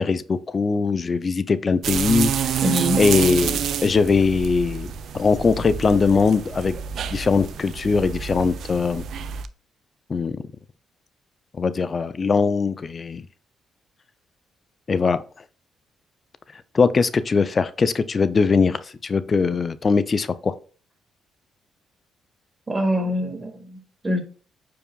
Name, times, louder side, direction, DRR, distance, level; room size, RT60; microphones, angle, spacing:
voice 1, 0.0-2.5 3.0-6.8 7.1-9.0 10.1-10.4 11.6-13.2 14.9-15.2 16.7-20.6, left 4 dB, 35° left, 14 dB, 0.4 m, -21 dB
sound 1, 1.8-9.5, right 7 dB, 70° right, 0.5 m, -28 dB
voice 2, 2.6-3.0 22.7-24.2, equal, 25° right, 4 dB, 1.9 m, -24 dB
8.8 x 4.8 x 2.4 m, 0.39 s
cardioid pair, 90°, 0 cm